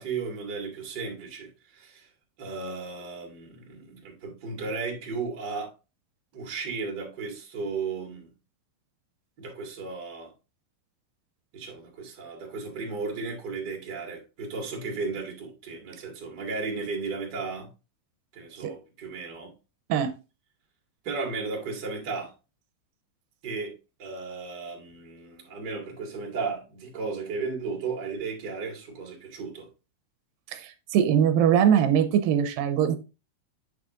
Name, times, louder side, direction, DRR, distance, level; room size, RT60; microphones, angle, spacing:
voice 1, 0.0-2.1 2.4-5.7 6.3-8.3 9.4-10.3 11.5-17.7 18.3-19.5 21.0-22.3 23.4-23.7 24.0-29.7, right 4 dB, 35° right, 2.1 m, -35 dB
voice 2, 30.5-33.0, right 9 dB, 90° right, 2.4 m, -22 dB
8.1 x 6.3 x 2.5 m
omnidirectional pair, 4.0 m